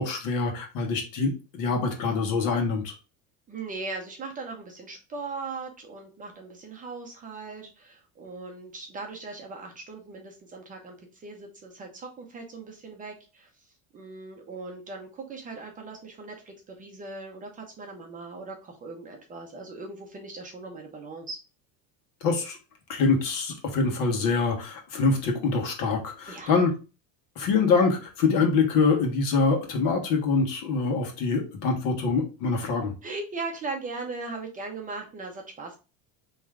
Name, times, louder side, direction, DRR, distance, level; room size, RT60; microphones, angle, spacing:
voice 1, 0.0-2.9 22.2-22.6 22.9-26.7 27.3-32.9, left 4 dB, 60° left, 2 dB, 1.6 m, -25 dB
voice 2, 3.5-13.6 13.9-21.4 26.3-26.5 33.0-35.8, right 3 dB, 20° right, 2 dB, 0.7 m, -39 dB
4.5 x 3.1 x 3.6 m, 0.32 s
cardioid pair, 165°, 39 cm